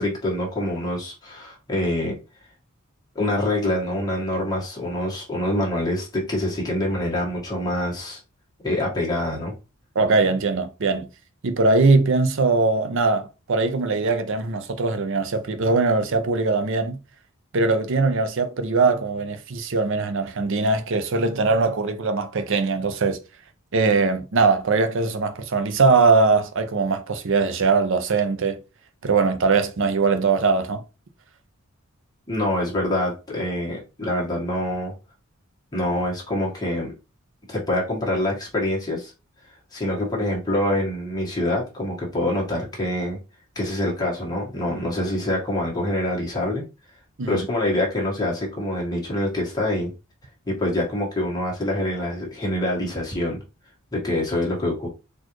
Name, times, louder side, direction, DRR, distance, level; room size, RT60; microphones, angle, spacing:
voice 1, 0.0-2.1 3.1-8.2 8.6-9.5 32.3-34.9 35.7-36.9 37.5-39.1 39.7-43.2 43.5-46.6 47.2-49.9 50.5-53.4 53.9-54.9, left 1 dB, 20° left, 1.4 m, -25 dB
voice 2, 10.0-11.1 11.4-17.0 17.5-23.2 23.7-28.6 29.0-30.8 47.2-47.5, right 4 dB, 60° right, 0.6 m, -21 dB
4.1 x 2.5 x 3.0 m
head